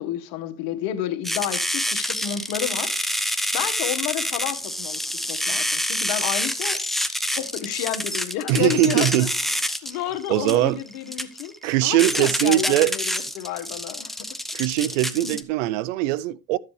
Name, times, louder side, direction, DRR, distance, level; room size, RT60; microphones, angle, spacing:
voice 1, 0.0-5.0 5.3-6.8 7.3-9.3 9.8-11.5 11.8-14.2 15.2-15.4, left 11 dB, 70° left, 1.4 m, -30 dB
sound 1, 1.2-15.4, equal, ahead, 0.8 m, -27 dB
voice 2, 8.5-9.3 10.3-10.8 11.6-12.9 14.5-16.6, right 16 dB, 85° right, 0.5 m, -21 dB
13.0 x 7.4 x 3.2 m
supercardioid pair, 95°, 37 cm